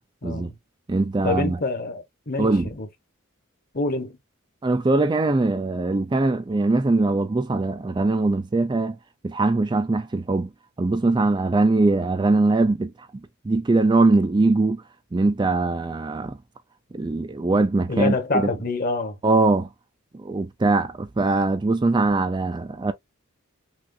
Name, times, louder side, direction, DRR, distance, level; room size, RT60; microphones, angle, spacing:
voice 1, 0.2-0.6 1.2-2.9 3.7-4.2 17.9-19.2, left 3 dB, 45° left, 1.1 m, -26 dB
voice 2, 0.9-1.6 2.4-2.7 4.6-9.0 9.2-10.5 10.8-12.9 13.4-14.8 15.1-16.4 16.9-18.5 19.2-19.7 20.1-22.9, right 3 dB, 20° right, 0.3 m, -21 dB
5.9 x 2.4 x 2.5 m
head